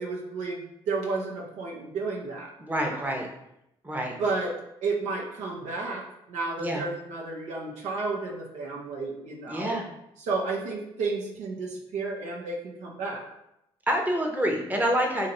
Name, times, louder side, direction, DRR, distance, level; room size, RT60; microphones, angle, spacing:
voice 1, 0.0-3.1 4.2-4.5 4.8-9.8 10.2-13.2, right 3 dB, 70° right, -1 dB, 0.6 m, -32 dB
voice 2, 2.6-3.3 3.8-4.1 6.6-6.8 9.5-9.9 13.9-15.3, equal, 15° right, 1 dB, 0.8 m, -27 dB
2.8 x 2.5 x 4.2 m, 0.82 s
hypercardioid pair, 50°, 13 cm